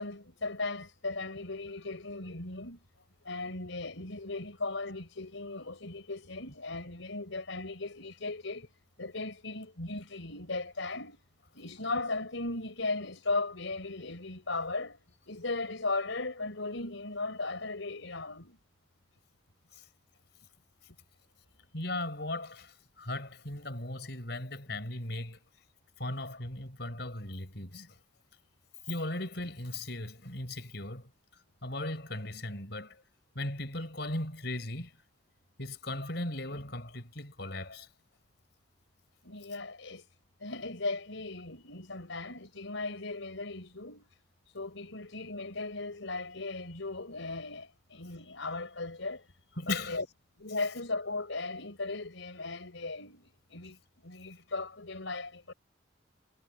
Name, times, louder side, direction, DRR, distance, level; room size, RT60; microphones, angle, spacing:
voice 1, 0.0-2.8 3.2-8.7 9.0-11.2 11.5-18.6 39.2-40.1 40.4-44.1 44.5-49.3 49.6-50.1 50.4-55.5, left 3 dB, 75° left, 4.1 m, -37 dB
voice 2, 21.7-25.4 26.0-27.9 28.9-31.1 31.6-33.0 33.4-34.9 35.6-37.9 49.6-50.0, left 2 dB, 55° left, 5.6 m, -37 dB
head